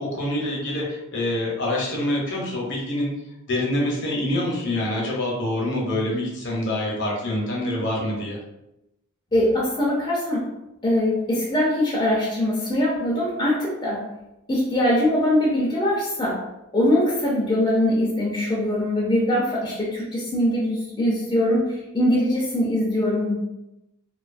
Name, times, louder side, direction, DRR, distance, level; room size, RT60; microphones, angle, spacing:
voice 1, 0.0-3.1 3.5-8.4, left 1 dB, 50° left, -3 dB, 0.7 m, -26 dB
voice 2, 9.3-10.4 10.8-14.0 14.5-16.4 16.7-23.4, left 1 dB, 20° left, -6 dB, 0.4 m, -22 dB
2.5 x 2.3 x 2.5 m, 0.91 s
head